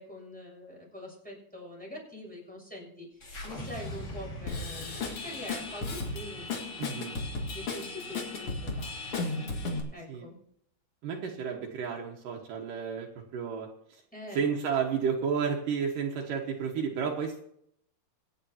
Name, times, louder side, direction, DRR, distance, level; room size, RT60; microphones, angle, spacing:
voice 1, 0.0-3.1 3.4-6.9 7.5-9.3 9.6-10.3 14.1-14.5, left 1 dB, ahead, -2 dB, 6.6 m, -44 dB
sound 1, 3.2-7.5, left 1 dB, 25° left, 1.9 m, -43 dB
Drum kit / Drum, 4.5-9.8, left 3 dB, 45° left, 2.7 m, -35 dB
voice 2, 6.8-7.2 10.1-10.3 11.0-14.0 14.3-17.4, right 6 dB, 75° right, 0 dB, 3.0 m, -32 dB
25.5 x 9.9 x 2.9 m, 0.70 s
omnidirectional pair, 3.8 m